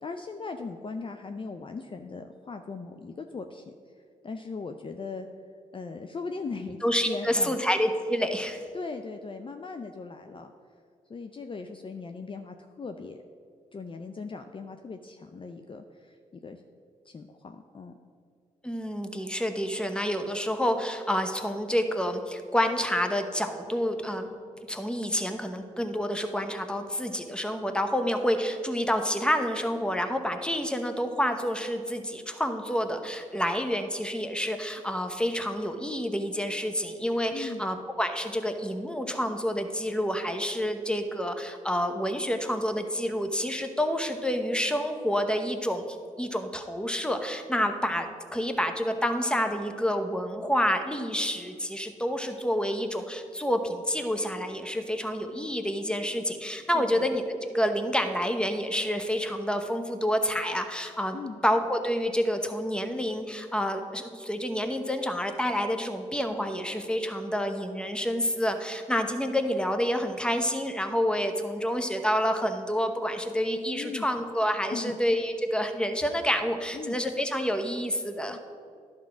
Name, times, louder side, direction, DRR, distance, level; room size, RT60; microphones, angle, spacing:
voice 1, 0.0-3.7 4.2-5.3 5.7-6.8 7.1-7.6 8.7-10.5 11.1-13.2 13.7-16.2 16.4-16.6 17.1-17.9 37.3-37.7 56.7-57.1 61.1-61.4 73.7-74.1 74.7-75.0 76.7-77.0 78.3-78.4, left 4 dB, 35° left, 6 dB, 0.5 m, -38 dB
voice 2, 6.8-8.6 18.6-24.3 24.7-78.4, equal, 5° left, 6 dB, 1.0 m, -28 dB
11.0 x 3.7 x 6.0 m, 2.3 s
hypercardioid pair, 45°, 16 cm